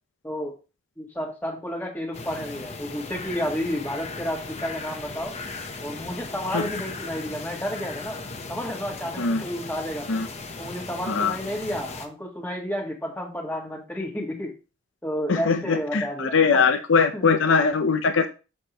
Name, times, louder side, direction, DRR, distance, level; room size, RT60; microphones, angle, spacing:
voice 1, 0.2-0.5 1.0-5.3 5.8-8.2 8.5-10.1 10.6-14.5 15.0-16.7 17.1-17.4, equal, 10° left, -2 dB, 1.5 m, -31 dB
sound 1, 2.1-12.1, left 3 dB, 35° left, 0.9 m, -37 dB
voice 2, 15.3-18.3, left 5 dB, 80° left, 8 dB, 0.7 m, -21 dB
7.2 x 6.5 x 3.0 m, 0.31 s
head